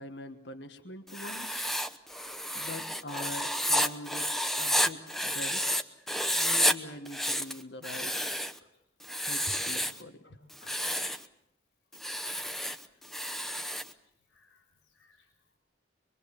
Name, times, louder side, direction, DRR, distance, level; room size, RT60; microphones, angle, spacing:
voice 1, 0.0-1.6 2.5-5.9 6.3-8.1 9.2-10.2, left 1 dB, 65° left, 7 dB, 1.5 m, -43 dB
Writing, 1.1-5.8 6.1-6.7 7.1-8.6 9.0-10.0 10.5-11.2 11.9-13.9, equal, ahead, 0.9 m, -30 dB
voice 2, 10.2-10.8 13.0-13.1 13.5-13.8 14.3-14.6 14.9-15.3, left 2 dB, 85° left, 3 dB, 4.0 m, -61 dB
24.0 x 23.5 x 7.1 m, 0.80 s
head